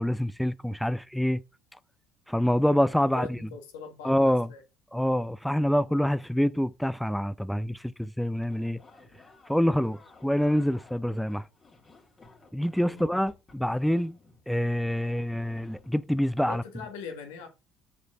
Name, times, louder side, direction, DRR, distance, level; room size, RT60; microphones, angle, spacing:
voice 1, 0.0-1.4 2.3-3.4 4.0-4.5 4.9-8.8 9.5-11.4 12.5-14.1 14.5-16.6, equal, ahead, 0.4 m, -26 dB
voice 2, 2.9-4.6 12.8-13.1 16.4-17.5, left 5 dB, 80° left, 1.5 m, -42 dB
sound 1, 8.3-16.0, left 3 dB, 35° left, 2.2 m, -55 dB
6.7 x 5.0 x 3.5 m
hypercardioid pair, 65°, 0 cm